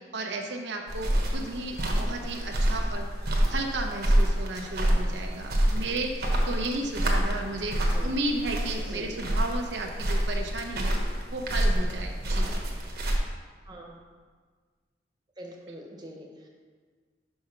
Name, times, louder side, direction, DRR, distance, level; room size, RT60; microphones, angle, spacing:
voice 1, 0.1-10.9 11.3-12.5, right 2 dB, 85° right, 2 dB, 0.8 m, -34 dB
sound 1, 0.9-13.2, right 1 dB, 60° right, 1.1 m, -27 dB
voice 2, 8.8-9.1 13.6-14.0 15.4-16.5, right 1 dB, 25° right, 0 dB, 1.0 m, -44 dB
5.6 x 5.5 x 5.8 m, 1.5 s
head